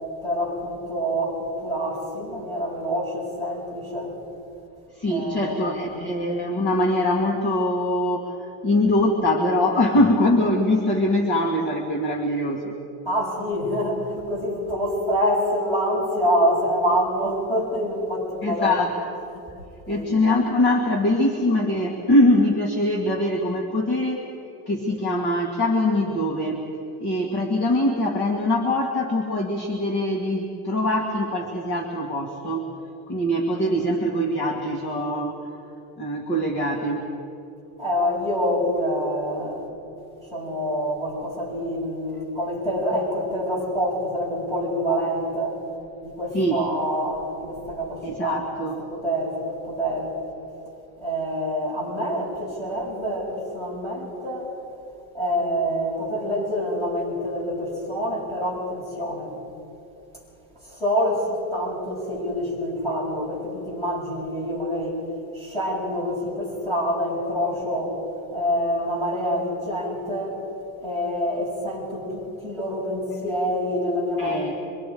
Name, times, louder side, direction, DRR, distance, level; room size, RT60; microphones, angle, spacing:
voice 1, 0.2-4.2 5.1-6.0 13.1-18.7 19.3-19.5 19.9-20.1 37.8-39.7 40.2-45.6 46.0-50.2 51.0-54.5 55.1-59.3 60.6-65.0 65.3-68.0 68.3-70.4 70.8-74.5, equal, 10° left, -6 dB, 6.9 m, -26 dB
voice 2, 4.9-12.7 18.4-19.0 19.9-24.3 24.7-26.6 27.0-32.7 33.1-35.4 36.0-37.1 46.3-46.6 48.0-48.8 74.2-74.5, left 1 dB, 30° left, -1 dB, 2.0 m, -23 dB
26.5 x 24.0 x 5.1 m, 2.9 s
cardioid pair, 175°, 39 cm